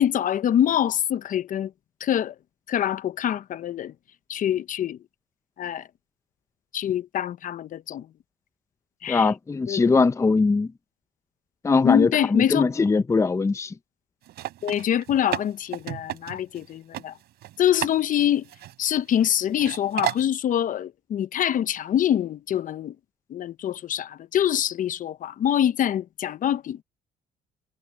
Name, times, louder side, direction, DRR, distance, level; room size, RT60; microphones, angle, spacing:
voice 1, 0.0-1.7 2.0-2.3 2.7-3.9 4.3-5.0 5.6-5.9 6.7-8.1 9.0-9.3 9.7-9.9 11.8-12.6 14.6-17.1 17.6-18.5 18.8-22.9 23.3-26.8, left 10 dB, 50° left, 0.8 m, -25 dB
voice 2, 9.1-10.7 11.6-13.7, left 4 dB, 15° left, 0.7 m, -21 dB
sound 1, 14.3-16.6 16.9-17.0 17.4-17.9 18.2-19.2 19.6-20.3, right 15 dB, 75° right, 4.3 m, -32 dB
cardioid pair, 110°, 17 cm